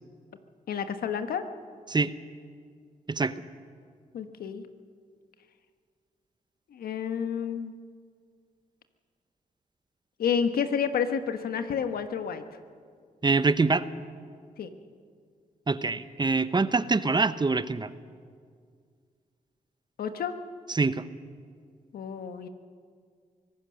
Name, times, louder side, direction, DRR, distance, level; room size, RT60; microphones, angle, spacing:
voice 1, 0.7-1.4 4.1-4.6 6.7-7.7 10.2-12.4 14.6-14.7 20.0-20.3 21.9-22.5, left 7 dB, 85° left, 9 dB, 1.3 m, -30 dB
voice 2, 13.2-13.8 15.7-17.9 20.7-21.0, right 3 dB, 30° right, 14 dB, 0.9 m, -24 dB
24.0 x 16.5 x 6.5 m, 2.1 s
cardioid pair, 65°, 15 cm